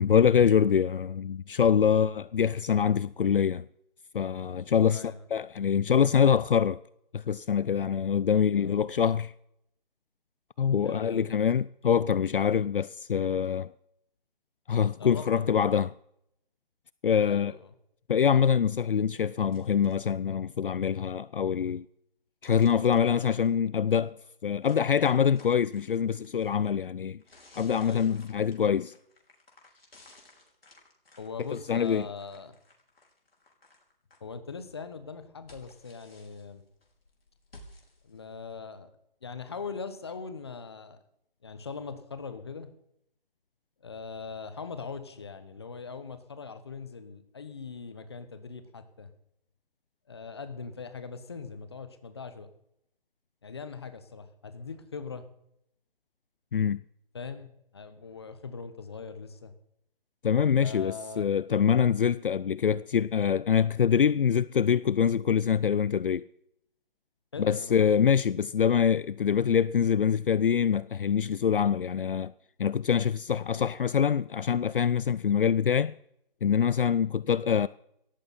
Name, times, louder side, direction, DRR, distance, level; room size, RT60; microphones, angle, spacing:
voice 1, 0.0-3.7 4.1-5.0 5.3-6.8 7.1-9.3 10.6-13.7 14.7-15.9 17.0-17.5 18.1-21.9 22.4-24.1 24.4-27.2 27.6-28.9 31.7-32.1 56.5-56.8 60.2-66.3 67.4-72.3 72.6-75.9 76.4-77.7, left 7 dB, 65° left, 0.5 m, -25 dB
voice 2, 4.9-5.2 8.3-8.9 10.8-11.3 15.0-15.5 17.3-17.7 27.8-28.2 31.2-32.5 34.2-36.6 38.0-38.9 39.2-41.0 41.4-42.7 43.8-49.1 50.1-52.5 53.4-55.3 57.1-59.5 60.6-61.3 67.3-68.1 73.5-73.7, left 5 dB, 25° left, 1.2 m, -41 dB
sound 1, 19.5-20.1 22.4-23.5 24.7-26.7 27.2-34.2 34.6-38.6, left 2 dB, 85° left, 5.2 m, -57 dB
18.0 x 14.0 x 4.2 m
hypercardioid pair, 175°, 29 cm